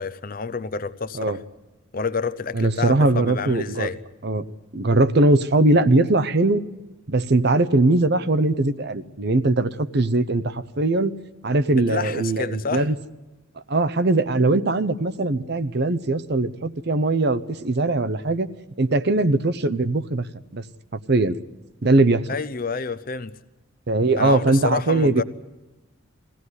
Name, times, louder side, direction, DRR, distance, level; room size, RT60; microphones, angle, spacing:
voice 1, 0.0-1.4 1.9-4.0 11.7-12.9 22.3-23.3 24.2-25.2, left 4 dB, 45° left, 15 dB, 0.7 m, -28 dB
voice 2, 2.5-3.9 4.2-4.4 4.7-6.6 7.1-11.1 11.4-13.0 13.7-18.5 18.8-20.3 20.5-20.6 20.9-21.4 21.8-22.3 23.9-25.2, right 2 dB, 50° right, 13 dB, 0.8 m, -20 dB
22.0 x 16.5 x 9.7 m, 1.1 s
head